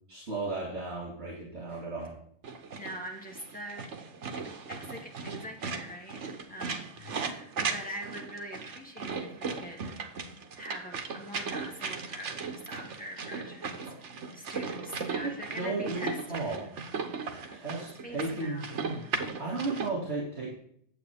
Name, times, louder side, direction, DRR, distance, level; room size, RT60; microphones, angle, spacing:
voice 1, 0.1-2.2 13.9-14.0 15.2-16.7 17.5-20.5, right 3 dB, 65° right, -4 dB, 2.5 m, -35 dB
sound 1, 2.4-19.9, right 5 dB, 90° right, 1.3 m, -37 dB
voice 2, 2.8-3.9 4.3-9.9 10.5-13.9 14.3-16.6 17.3-17.6 18.0-18.6 19.0-19.2, equal, 5° left, -1 dB, 2.0 m, -43 dB
9.0 x 7.9 x 3.5 m, 0.63 s
omnidirectional pair, 1.2 m